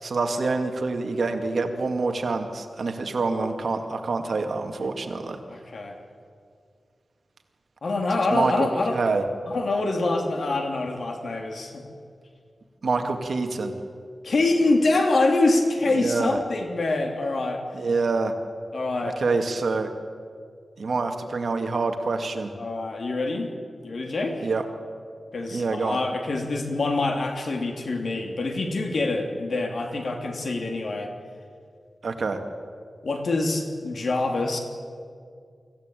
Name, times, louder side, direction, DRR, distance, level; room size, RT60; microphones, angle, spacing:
voice 1, 0.0-5.4 8.2-8.5 8.9-9.2 12.8-13.7 15.9-16.4 17.7-18.3 19.2-19.9 20.8-22.5 24.4-24.6 25.5-26.0 32.0-32.4, right 3 dB, 65° right, 5 dB, 2.2 m, -26 dB
voice 2, 5.5-6.0 7.8-9.0 9.5-11.8 14.2-17.6 18.7-19.2 22.6-23.5 23.8-24.5 25.3-31.1 33.0-34.6, left 2 dB, 65° left, 3 dB, 3.0 m, -25 dB
24.5 x 15.0 x 9.2 m, 2.2 s
wide cardioid pair, 115°, 0 cm